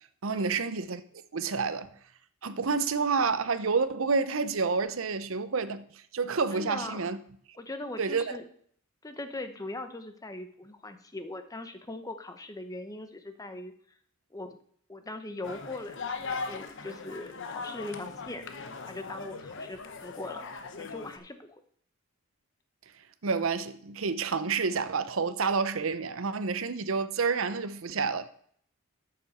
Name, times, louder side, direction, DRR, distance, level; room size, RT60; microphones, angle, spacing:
voice 1, 0.2-1.0 1.3-1.9 2.4-7.2 8.0-8.4 23.2-28.4, right 4 dB, 65° right, 0.7 m, -29 dB
voice 2, 6.5-7.1 7.6-8.5 9.0-13.7 14.3-14.6 14.9-16.0 16.5-18.5 18.8-20.5 20.8-21.6, left 2 dB, 15° left, 0.8 m, -40 dB
sound 1, 15.4-21.2, left 4 dB, 60° left, 0.9 m, -39 dB
13.5 x 6.9 x 4.2 m
head